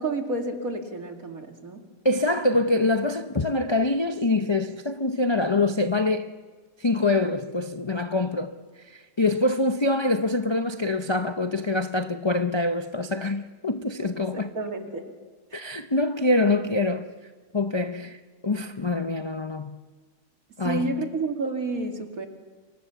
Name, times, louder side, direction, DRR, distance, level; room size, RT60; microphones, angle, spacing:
voice 1, 0.0-1.9 14.0-15.1 15.5-15.6 20.6-22.3, right 3 dB, 55° right, 2.8 m, -30 dB
voice 2, 2.0-6.3 6.8-8.5 8.9-14.5 15.5-17.1 17.5-19.8 20.6-21.0, left 2 dB, 40° left, 0.4 m, -25 dB
30.0 x 24.0 x 6.9 m
omnidirectional pair, 1.8 m